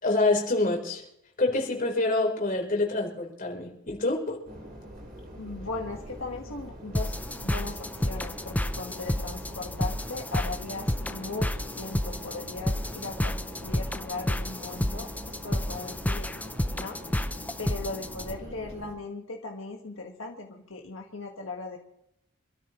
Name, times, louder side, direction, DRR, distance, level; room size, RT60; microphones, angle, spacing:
voice 1, 0.0-1.0 1.4-4.4, left 2 dB, 45° left, 0 dB, 4.0 m, -26 dB
sound 1, 4.4-18.9, equal, 45° right, 4.0 m, -43 dB
voice 2, 5.4-7.2 7.4-11.5 11.7-16.3 16.7-17.0 17.6-21.8, left 3 dB, 80° left, 1 dB, 1.5 m, -38 dB
sound 2, 6.9-18.3, left 1 dB, 10° left, 0.6 m, -31 dB
26.5 x 13.0 x 3.1 m, 0.80 s
head